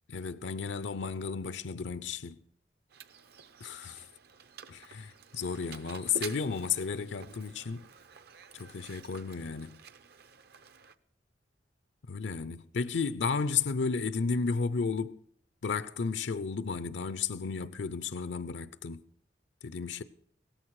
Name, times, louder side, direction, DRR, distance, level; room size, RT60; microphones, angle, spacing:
voice 1, 0.1-2.4 3.6-4.1 4.7-7.9 8.5-9.8 12.1-15.2 15.6-19.1 19.6-20.0, left 5 dB, 85° left, 0.6 m, -33 dB
Mechanisms, 2.9-11.0, right 6 dB, 60° right, 0.7 m, -49 dB
17.5 x 14.5 x 4.8 m
head